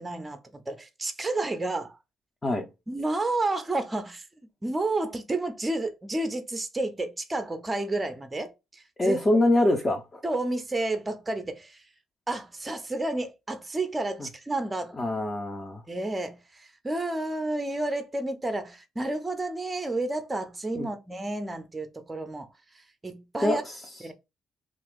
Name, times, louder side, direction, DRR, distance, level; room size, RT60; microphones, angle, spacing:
voice 1, 0.0-2.0 2.9-4.3 4.6-9.2 10.2-11.8 12.3-14.9 15.9-22.5 23.0-23.6 24.0-24.1, right 2 dB, 20° right, 0.6 m, -31 dB
voice 2, 9.0-10.2 15.0-15.8 20.7-20.9 23.4-23.8, left 1 dB, 20° left, 0.6 m, -24 dB
2.8 x 2.5 x 3.5 m
cardioid pair, 85°, 0 cm